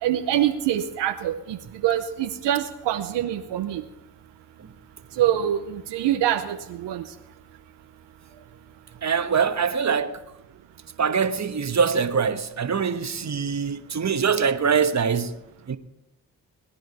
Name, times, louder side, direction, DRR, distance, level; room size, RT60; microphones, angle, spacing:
voice 1, 0.0-3.9 5.2-7.1, right 11 dB, 85° right, 0.8 m, -25 dB
voice 2, 9.0-10.2 11.0-15.4 15.7-15.8, right 6 dB, 40° right, 1.2 m, -23 dB
20.0 x 10.5 x 4.1 m
supercardioid pair, 40°, 41 cm